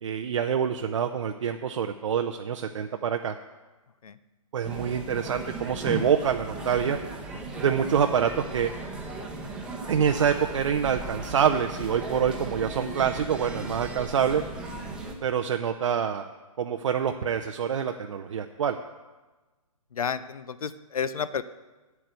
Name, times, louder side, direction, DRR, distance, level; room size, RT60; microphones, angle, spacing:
voice 1, 0.0-3.4 4.5-7.0 7.6-8.7 9.8-14.4 15.2-16.3 16.6-18.8, right 8 dB, 55° right, 6 dB, 0.6 m, -26 dB
sound 1, 4.6-15.1, right 2 dB, 5° right, 0.9 m, -37 dB
voice 2, 19.9-21.4, left 6 dB, 75° left, 15 dB, 0.7 m, -31 dB
8.1 x 7.8 x 8.1 m, 1.2 s
hypercardioid pair, 155°, 19 cm